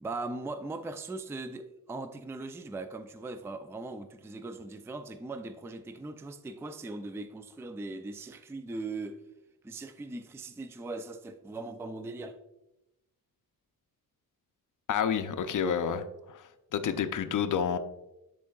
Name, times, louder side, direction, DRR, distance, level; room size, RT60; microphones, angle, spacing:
voice 1, 0.0-9.2 9.6-12.4, right 2 dB, 5° right, 0.4 m, -39 dB
voice 2, 14.9-17.8, left 7 dB, 55° left, 0.6 m, -30 dB
11.0 x 3.7 x 2.3 m
cardioid pair, 70°, 37 cm